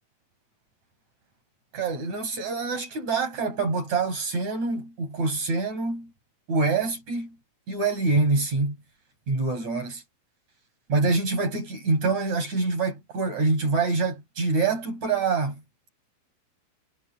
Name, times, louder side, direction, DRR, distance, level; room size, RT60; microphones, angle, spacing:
voice 1, 1.7-6.1 6.5-7.4 7.7-8.8 9.3-10.0 10.9-15.6, right 3 dB, 45° right, 8.9 m, -25 dB
omnidirectional pair, 4.5 m